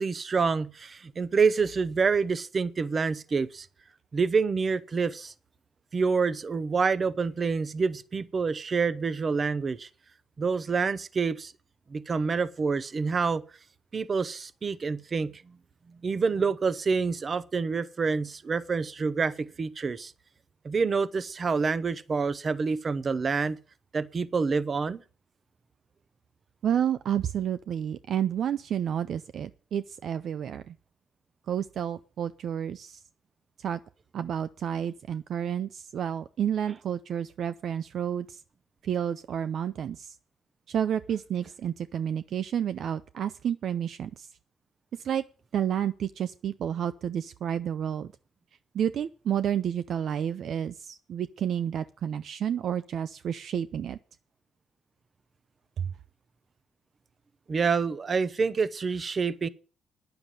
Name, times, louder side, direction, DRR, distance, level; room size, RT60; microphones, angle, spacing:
voice 1, 0.0-3.7 4.1-5.3 5.9-9.9 10.4-11.5 11.9-13.4 13.9-15.4 16.0-20.1 20.6-23.6 23.9-25.0 57.5-59.5, right 5 dB, 40° right, 0.8 m, -27 dB
voice 2, 26.6-30.7 31.5-33.0 33.6-33.8 34.1-38.4 38.8-40.2 40.7-44.3 44.9-45.2 45.5-48.1 48.7-54.0 55.8-55.9, right 9 dB, 65° right, 0.5 m, -30 dB
9.9 x 6.8 x 9.1 m
cardioid pair, 90°, 0 cm